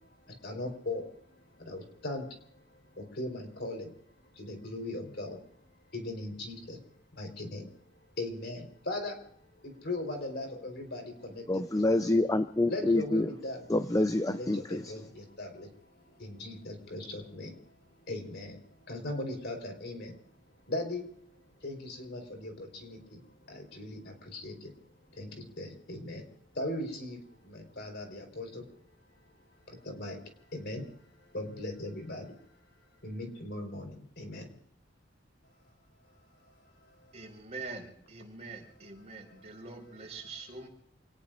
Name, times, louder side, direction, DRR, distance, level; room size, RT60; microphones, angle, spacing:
voice 1, 0.0-3.9 4.3-5.4 5.9-6.8 7.1-7.7 8.2-9.2 9.5-12.2 12.7-13.7 14.3-17.7 18.0-20.2 20.7-21.1 21.6-26.3 26.5-28.7 29.7-32.4 33.0-34.5 36.8-37.3 39.3-39.7, left 2 dB, 60° left, 4.4 m, -39 dB
voice 2, 11.5-13.3 13.7-14.8, left 2 dB, 20° left, 0.6 m, -27 dB
voice 3, 37.1-40.7, right 3 dB, 35° right, 5.0 m, -44 dB
28.5 x 19.5 x 2.6 m
head